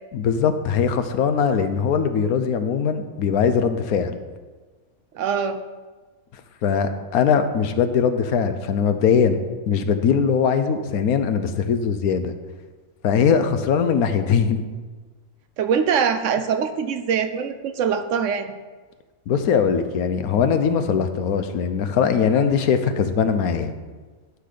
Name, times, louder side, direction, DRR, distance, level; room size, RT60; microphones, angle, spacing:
voice 1, 0.1-4.2 6.6-9.4 9.7-12.3 13.0-14.6 19.3-23.7, left 6 dB, 85° left, 9 dB, 1.2 m, -21 dB
voice 2, 5.1-5.6 15.6-18.5, right 7 dB, 70° right, 9 dB, 0.9 m, -23 dB
11.5 x 4.0 x 6.6 m, 1.3 s
omnidirectional pair, 1.5 m